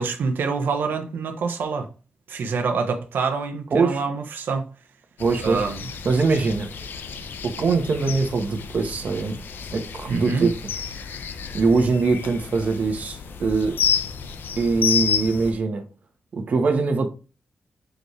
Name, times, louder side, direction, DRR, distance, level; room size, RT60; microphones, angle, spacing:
voice 1, 0.0-1.9 2.3-4.6 5.4-5.8 10.1-10.5, right 5 dB, 85° right, 1.1 m, -26 dB
voice 2, 3.7-4.0 5.2-5.6 6.0-6.7 7.4-9.4 9.7-10.6 11.5-13.8 14.6-15.8 16.3-17.1, right 4 dB, 50° right, 1.3 m, -22 dB
sound 1, 5.2-15.5, left 7 dB, 80° left, 0.7 m, -30 dB
6.4 x 5.2 x 3.2 m
wide cardioid pair, 180°, 3 cm